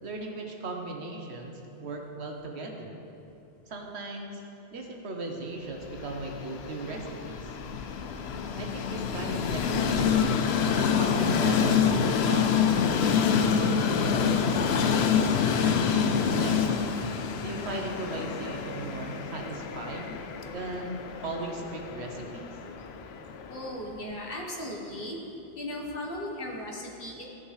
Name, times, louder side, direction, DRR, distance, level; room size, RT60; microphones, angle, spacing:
voice 1, 0.0-2.9 3.7-4.4 4.7-7.6 8.6-10.4 10.7-14.0 15.5-16.8 17.3-20.2 20.5-22.6, right 2 dB, 80° right, 2 dB, 1.3 m, -38 dB
Train, 5.8-23.9, left 6 dB, 75° left, 0.8 m, -27 dB
voice 2, 23.5-25.2 25.5-27.2, left 1 dB, 60° left, -2 dB, 1.5 m, -37 dB
14.5 x 5.7 x 3.3 m, 2.8 s
omnidirectional pair, 1.1 m